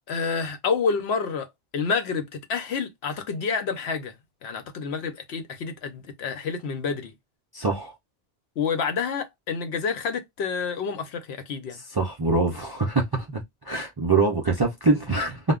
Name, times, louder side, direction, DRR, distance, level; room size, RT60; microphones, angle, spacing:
voice 1, 0.1-1.5 1.7-4.1 4.4-7.1 8.6-11.8, left 5 dB, 75° left, 0.9 m, -28 dB
voice 2, 7.5-7.9 11.9-13.4 13.7-15.4, right 3 dB, 40° right, 0.3 m, -24 dB
2.2 x 2.0 x 3.5 m
omnidirectional pair, 1.1 m